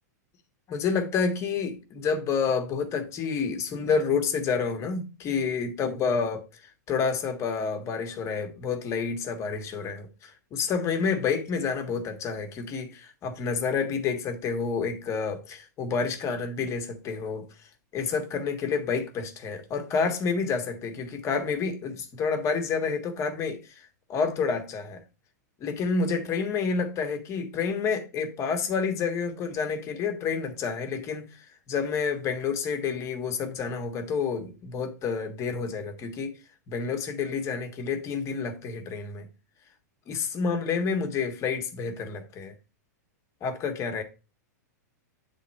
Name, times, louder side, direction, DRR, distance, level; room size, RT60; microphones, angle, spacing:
voice 1, 0.7-6.4 6.9-17.5 17.9-25.0 25.6-36.3 36.7-39.3 40.1-42.5 43.4-44.0, left 5 dB, 30° left, 1.5 m, -29 dB
8.2 x 3.8 x 4.3 m
hypercardioid pair, 130°, 10 cm